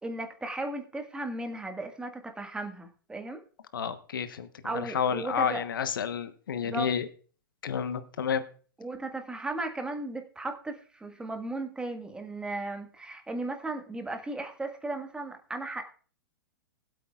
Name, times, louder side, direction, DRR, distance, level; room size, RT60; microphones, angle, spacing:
voice 1, 0.0-3.4 4.6-5.6 6.6-6.9 8.8-15.8, right 2 dB, 10° right, 4 dB, 1.7 m, -36 dB
voice 2, 3.7-4.5 4.7-7.1 7.6-8.4, left 7 dB, 75° left, 11 dB, 1.1 m, -30 dB
20.0 x 8.4 x 2.4 m, 0.40 s
hypercardioid pair, 115°, 11 cm